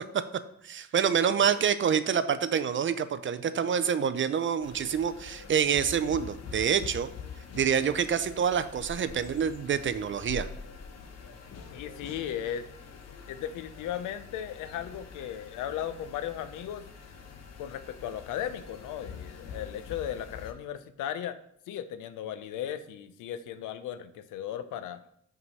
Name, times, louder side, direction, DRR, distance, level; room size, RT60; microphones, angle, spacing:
voice 1, 0.6-7.1 7.5-10.5, right 7 dB, 40° right, 12 dB, 0.6 m, -27 dB
sound 1, 4.6-20.5, left 6 dB, 60° left, 1.2 m, -45 dB
voice 2, 11.7-12.6 13.3-16.8 17.6-21.4 21.7-25.0, left 10 dB, 90° left, 12 dB, 0.6 m, -36 dB
5.8 x 4.8 x 5.4 m, 0.71 s
cardioid pair, 90°, 30 cm